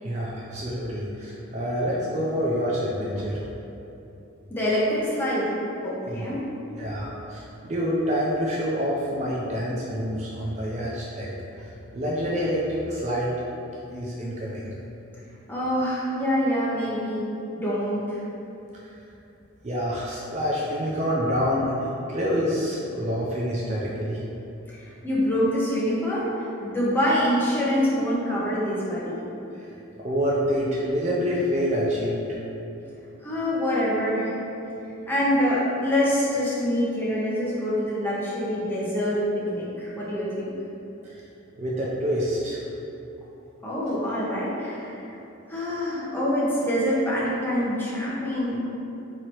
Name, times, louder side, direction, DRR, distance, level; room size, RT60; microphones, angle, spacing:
voice 1, 0.0-3.4 6.0-6.3 6.8-11.3 11.6-13.3 13.9-14.7 19.6-24.2 29.6-29.7 30.0-32.3 41.0-41.2 41.6-42.6, equal, 30° right, -5 dB, 0.4 m, -27 dB
voice 2, 4.5-5.5 5.8-6.4 15.5-17.2 17.6-18.2 24.7-29.2 33.2-34.3 35.1-40.6 43.6-45.0 45.5-48.6, equal, 10° left, -8 dB, 0.7 m, -25 dB
3.0 x 2.8 x 4.3 m, 2.9 s
head